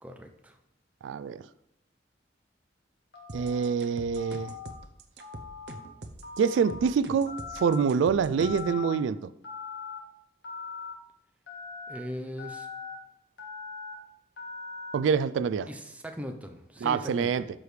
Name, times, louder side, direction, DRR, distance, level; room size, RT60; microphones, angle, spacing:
voice 1, 0.0-0.6 11.9-12.7 15.7-17.5, equal, 5° right, 0.6 m, -39 dB
voice 2, 1.0-1.4 3.3-4.6 6.4-9.3 14.9-15.7 16.8-17.4, right 6 dB, 90° right, 0.3 m, -26 dB
Telephone, 3.1-3.6 4.2-4.7 5.2-5.8 6.2-6.8 7.3-7.8 8.4-9.0 9.4-10.0 10.4-10.9 11.5-12.0 12.4-12.9 13.4-13.9 14.4-14.9, left 5 dB, 65° left, 1.5 m, -41 dB
sound 1, 3.3-8.7, right 2 dB, 65° right, 0.7 m, -44 dB
12.5 x 4.9 x 3.2 m
head